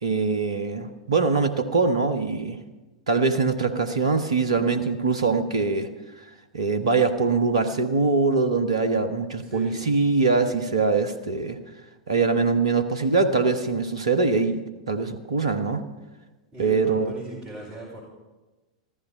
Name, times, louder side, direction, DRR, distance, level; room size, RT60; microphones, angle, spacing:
voice 1, 0.0-2.6 3.1-5.9 6.5-11.6 12.1-15.8 16.6-17.1, right 4 dB, 70° right, 9 dB, 1.1 m, -23 dB
voice 2, 9.4-9.8 16.5-18.0, right 1 dB, 20° right, -5 dB, 4.6 m, -38 dB
15.0 x 13.5 x 5.3 m, 1.1 s
figure-of-eight pair, 95°, 3 cm